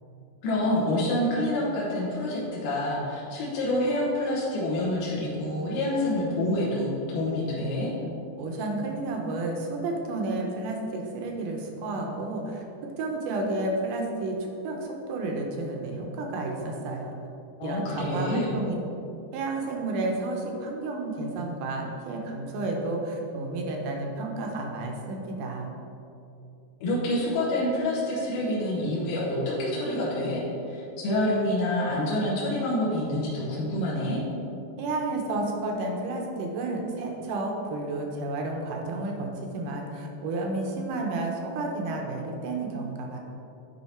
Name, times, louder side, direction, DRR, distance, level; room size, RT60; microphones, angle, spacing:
voice 1, 0.4-7.9 17.6-18.5 26.8-34.2, left 1 dB, 70° left, -6 dB, 2.6 m, -27 dB
voice 2, 8.4-12.6 13.0-14.4 14.6-17.2 17.6-18.8 19.3-25.7 34.8-43.2, right 2 dB, 75° right, 1 dB, 2.1 m, -31 dB
10.5 x 3.7 x 4.3 m, 2.8 s
omnidirectional pair, 4.2 m